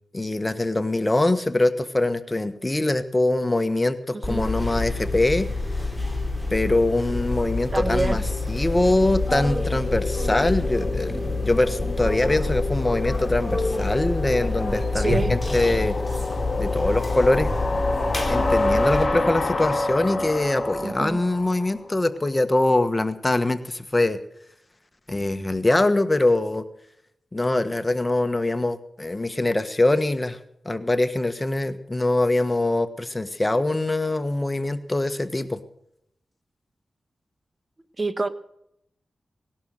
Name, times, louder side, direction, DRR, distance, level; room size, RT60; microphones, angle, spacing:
voice 1, 0.1-5.5 6.5-8.2 8.5-15.9 16.6-17.5 18.3-24.2 25.1-26.6 27.3-30.4 30.6-35.6, left 2 dB, 25° left, 10 dB, 1.4 m, -23 dB
voice 2, 4.1-4.4 7.7-8.2 14.9-15.3 20.8-21.2 38.0-38.3, right 3 dB, 40° right, 12 dB, 1.2 m, -26 dB
sound 1, 4.2-19.0, left 2 dB, ahead, 4.2 m, -27 dB
sound 2, 7.0-21.9, left 2 dB, 45° left, 2.2 m, -29 dB
19.0 x 11.5 x 6.6 m, 0.77 s
cardioid pair, 65°, 0 cm